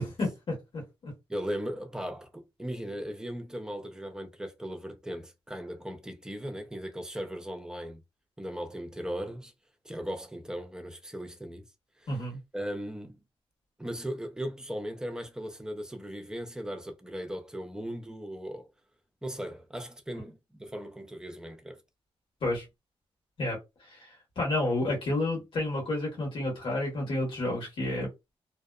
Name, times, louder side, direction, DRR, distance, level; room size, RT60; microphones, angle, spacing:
voice 1, 0.0-1.1 12.1-12.4 22.4-22.6 23.4-24.1 24.4-28.1, left 2 dB, 60° left, 1.4 m, -31 dB
voice 2, 1.3-8.0 8.4-9.5 9.8-11.6 12.0-12.3 12.5-13.2 13.8-18.7 19.2-21.8, equal, 5° right, 0.5 m, -38 dB
2.7 x 2.0 x 2.3 m
cardioid pair, 105°, 10 cm